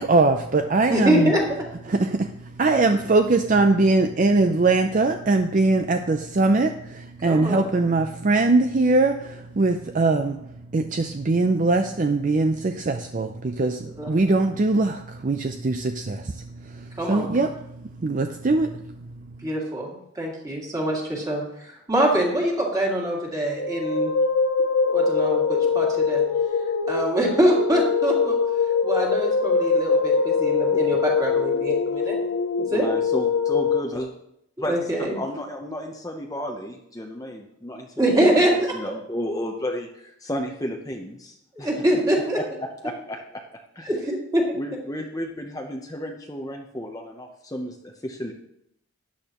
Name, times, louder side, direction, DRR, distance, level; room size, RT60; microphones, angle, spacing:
voice 1, 0.0-1.3 1.9-19.5, right 3 dB, 40° right, 6 dB, 0.5 m, -22 dB
voice 2, 0.9-1.4 7.2-7.6 14.0-14.1 17.0-17.3 19.4-19.9 20.2-24.1 24.9-26.2 26.9-28.4 28.8-32.2 32.6-32.9 34.7-35.2 38.0-38.7 41.6-42.4 43.9-44.4, right 1 dB, 15° right, -2 dB, 2.3 m, -24 dB
sound 1, 23.6-33.8, left 5 dB, 90° left, 0.7 m, -23 dB
voice 3, 32.7-34.1 34.6-38.4 38.7-41.8 42.6-43.4 43.7-43.9 44.5-48.3, left 1 dB, 15° left, 2 dB, 0.7 m, -33 dB
13.0 x 10.0 x 3.0 m, 0.77 s
head